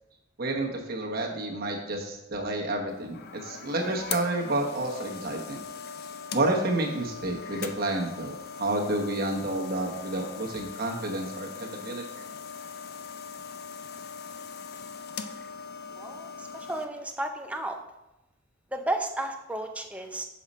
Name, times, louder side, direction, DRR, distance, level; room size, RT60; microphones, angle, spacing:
voice 1, 0.4-5.6 6.3-12.0, right 2 dB, 50° right, 0 dB, 1.0 m, -30 dB
sound 1, 2.9-16.8, left 6 dB, 50° left, 0.4 m, -40 dB
voice 2, 16.0-16.3 16.7-17.8 18.7-20.2, right 1 dB, 5° right, 4 dB, 0.5 m, -32 dB
6.6 x 5.1 x 4.1 m, 0.95 s
head